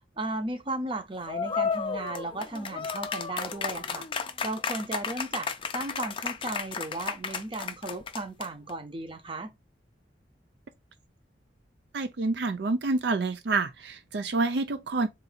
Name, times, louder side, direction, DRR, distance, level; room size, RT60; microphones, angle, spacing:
voice 1, 0.2-4.0 4.4-5.5 5.7-9.5, right 2 dB, 30° right, 0.8 m, -35 dB
sound 1, 1.3-8.7, left 5 dB, 30° left, 0.4 m, -33 dB
voice 2, 11.9-15.1, right 3 dB, 65° right, 0.4 m, -28 dB
3.9 x 2.7 x 4.0 m
head